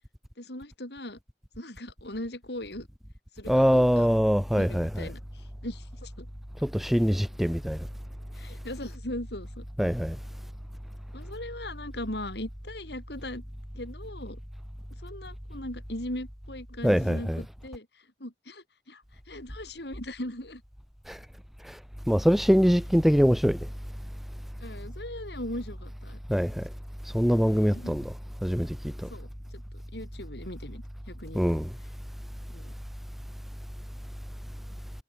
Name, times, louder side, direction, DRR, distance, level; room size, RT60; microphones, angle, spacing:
voice 1, 0.4-1.2 1.6-2.9 3.4-4.1 4.5-5.2 5.6-6.3 8.4-9.6 11.1-13.4 13.7-14.4 15.0-17.9 18.2-19.0 19.3-20.6 24.6-26.2 27.4-28.0 29.1-29.6 29.9-31.5 32.5-32.7, left 1 dB, 65° left, 7.8 m, -39 dB
voice 2, 3.5-5.1 6.6-7.8 9.8-10.2 16.8-17.4 21.1-21.2 22.1-23.6 26.3-26.6 27.1-28.1 28.4-28.8 29.0-29.1 31.3-31.7, equal, ahead, 2.0 m, -23 dB
head